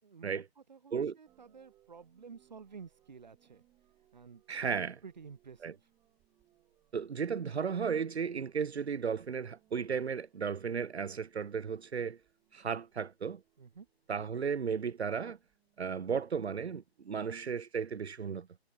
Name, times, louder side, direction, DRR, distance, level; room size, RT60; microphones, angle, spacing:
voice 1, 0.0-3.6 4.1-5.9 13.6-13.9, right 6 dB, 45° right, 4.6 m, -52 dB
sound 1, 1.2-17.2, right 14 dB, 5° right, 1.6 m, -72 dB
voice 2, 4.5-4.9 5.6-5.7 6.9-12.2 12.5-13.4 14.1-15.4 15.8-18.6, right 6 dB, 80° right, 0.6 m, -34 dB
figure-of-eight pair, 150°, 32 cm